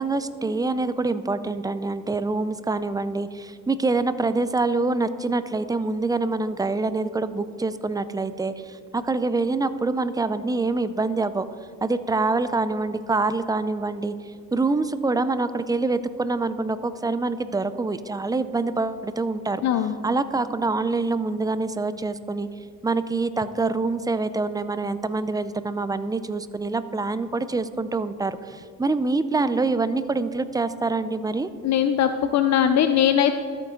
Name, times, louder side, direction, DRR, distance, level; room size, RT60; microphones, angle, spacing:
voice 1, 0.0-11.5 11.8-14.1 14.5-22.5 22.8-31.5, right 3 dB, 10° right, 13 dB, 0.5 m, -25 dB
voice 2, 19.6-19.9 31.6-33.3, left 9 dB, 65° left, 9 dB, 0.5 m, -20 dB
13.0 x 8.5 x 3.8 m, 2.2 s
cardioid pair, 90°, 30 cm